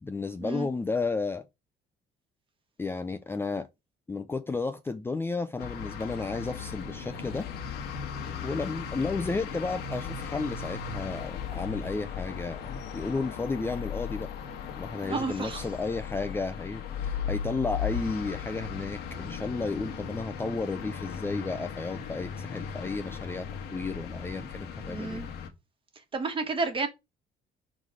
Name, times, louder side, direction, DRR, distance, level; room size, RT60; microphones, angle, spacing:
voice 1, 0.0-1.5 2.8-3.7 4.1-7.5 8.4-14.3 14.7-25.2, left 3 dB, 15° left, 0.4 m, -33 dB
sound 1, 5.6-25.5, left 7 dB, 80° left, 1.2 m, -37 dB
voice 2, 15.0-15.7 24.9-25.3 26.1-26.9, right 3 dB, 30° right, 1.4 m, -31 dB
4.9 x 4.0 x 4.9 m
cardioid pair, 110°, 17 cm